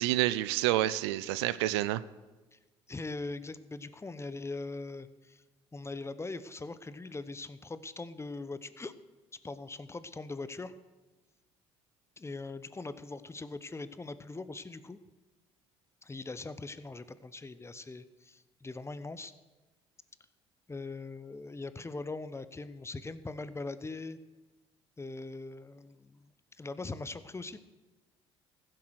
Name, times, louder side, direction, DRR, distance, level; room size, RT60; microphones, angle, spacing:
voice 1, 0.0-2.0, right 15 dB, 80° right, 17 dB, 0.4 m, -28 dB
voice 2, 2.9-5.4 5.7-8.9 9.4-10.7 12.2-15.0 16.0-19.3 20.7-24.2 25.0-26.3 26.6-27.6, left 3 dB, 20° left, 14 dB, 0.9 m, -41 dB
15.0 x 7.7 x 6.4 m, 1.2 s
hypercardioid pair, 55°, 14 cm